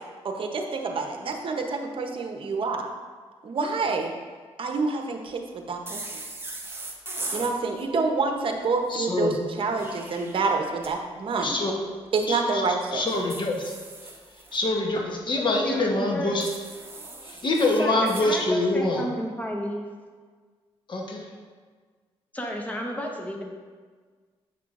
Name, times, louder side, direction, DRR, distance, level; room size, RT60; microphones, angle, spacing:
voice 1, 0.2-2.9 3.4-4.1 4.6-6.0 7.3-11.5 12.1-13.0, right 4 dB, 55° right, 4 dB, 0.8 m, -27 dB
sound 1, 5.9-7.5 9.6-10.9 13.1-14.6 16.4-18.3, right 2 dB, 20° right, 1.0 m, -39 dB
voice 2, 8.9-9.3 11.4-11.7 12.3-12.6 12.9-13.6 14.5-16.5 17.3-19.0 20.9-21.2, left 2 dB, 45° left, 0 dB, 1.0 m, -25 dB
voice 3, 15.4-16.4 17.8-19.9 22.3-23.4, equal, 15° left, 0 dB, 1.0 m, -32 dB
7.5 x 5.6 x 2.5 m, 1.5 s
cardioid pair, 75°, 11 cm